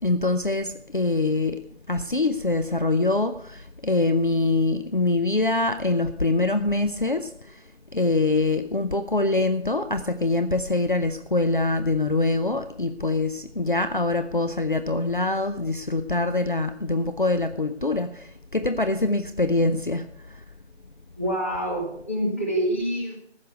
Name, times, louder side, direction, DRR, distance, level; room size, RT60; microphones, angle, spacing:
voice 1, 0.0-7.7 7.9-20.4, left 2 dB, 45° left, 10 dB, 0.6 m, -24 dB
voice 2, 21.2-23.2, equal, 10° left, -4 dB, 1.3 m, -26 dB
14.5 x 6.6 x 8.0 m, 0.68 s
figure-of-eight pair, 170°, 34 cm